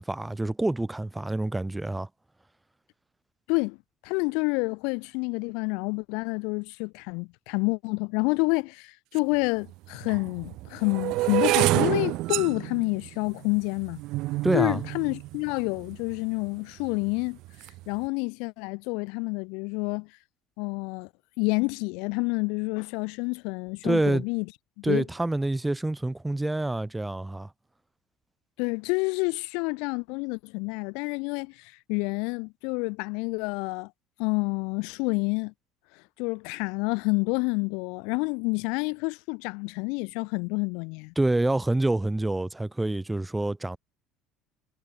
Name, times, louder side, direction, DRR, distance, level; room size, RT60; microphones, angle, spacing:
voice 1, 0.0-2.1 14.4-14.8 23.8-24.2 24.8-27.5 41.2-43.8, right 2 dB, 5° right, 1.0 m, -27 dB
voice 2, 4.0-14.0 14.5-17.4 17.9-20.1 20.6-21.1 21.4-24.4 24.8-25.0 28.6-33.9 34.2-35.5 36.2-41.1, left 32 dB, 70° left, 1.1 m, -28 dB
sound 1, 9.2-9.3 10.0-16.2 16.8-17.2 17.5-17.8, right 19 dB, 55° right, 3.4 m, -28 dB
cardioid pair, 175°, 0 cm